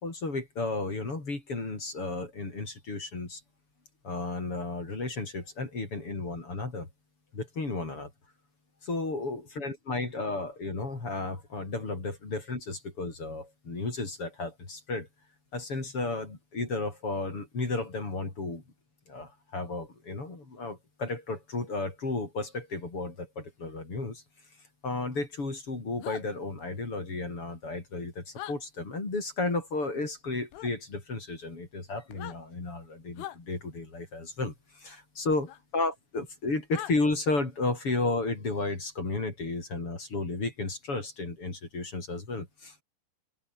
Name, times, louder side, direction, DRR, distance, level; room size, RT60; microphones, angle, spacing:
voice 1, 0.0-3.4 4.0-6.9 7.3-8.1 8.8-15.1 15.5-18.6 19.1-24.2 24.8-35.5 35.7-42.8, left 3 dB, 25° left, 5.8 m, -33 dB
sound 1, 26.0-26.2 28.3-28.6 30.5-30.7 32.1-32.4 33.2-33.4 35.5-35.6 36.7-36.9, left 13 dB, 75° left, 4.2 m, -40 dB
open air
omnidirectional pair, 5.8 m